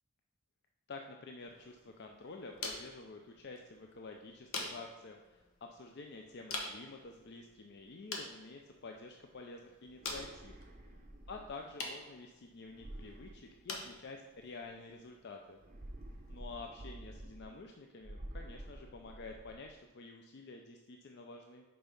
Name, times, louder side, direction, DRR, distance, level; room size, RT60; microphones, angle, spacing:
voice 1, 0.9-10.6 11.3-15.6 16.3-21.6, left 3 dB, 50° left, 3 dB, 0.4 m, -49 dB
sound 1, 1.4-16.4, left 3 dB, 75° left, 1.1 m, -48 dB
sound 2, 9.9-11.8 12.7-14.2 15.6-17.7 18.0-19.7, right 1 dB, 35° right, 0.7 m, -50 dB
5.4 x 4.4 x 5.3 m, 1.2 s
head